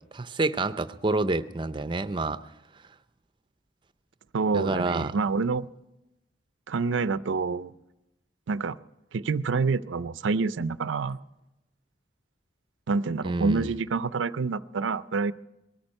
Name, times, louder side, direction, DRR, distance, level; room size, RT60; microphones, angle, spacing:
voice 1, 0.0-2.4 4.5-5.2 13.2-13.8, right 2 dB, 25° right, 12 dB, 0.5 m, -28 dB
voice 2, 4.3-5.7 6.7-7.7 8.5-8.8 9.1-11.2 12.9-15.3, right 4 dB, 85° right, 15 dB, 0.5 m, -27 dB
19.5 x 13.5 x 5.4 m, 0.93 s
head